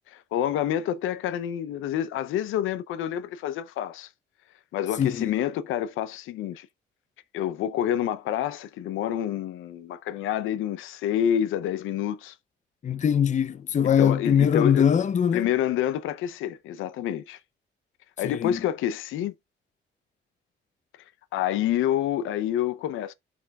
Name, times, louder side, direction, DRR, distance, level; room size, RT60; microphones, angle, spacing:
voice 1, 0.1-4.1 4.7-6.7 7.3-12.4 13.8-14.9 15.3-17.4 18.2-19.3 21.3-23.1, left 10 dB, 90° left, 0.7 m, -28 dB
voice 2, 5.0-5.3 12.8-15.5 18.2-18.6, left 8 dB, 40° left, 0.6 m, -22 dB
12.5 x 4.6 x 2.4 m
cardioid pair, 90°, 20 cm